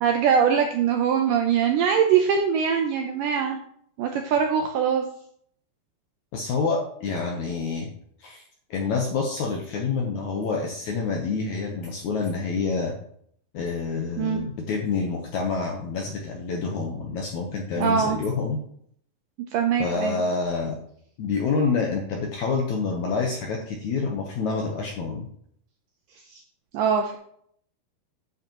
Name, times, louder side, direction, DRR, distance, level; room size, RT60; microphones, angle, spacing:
voice 1, 0.0-3.6 4.0-5.1 14.2-14.4 17.8-18.2 19.5-20.2 26.3-26.4 26.7-27.2, right 7 dB, 80° right, 4 dB, 1.9 m, -22 dB
voice 2, 6.3-7.9 8.2-8.4 8.7-13.0 13.5-18.6 19.8-20.8 21.2-25.3, left 4 dB, 70° left, 0 dB, 1.8 m, -27 dB
9.5 x 7.9 x 3.0 m, 0.65 s
omnidirectional pair, 4.5 m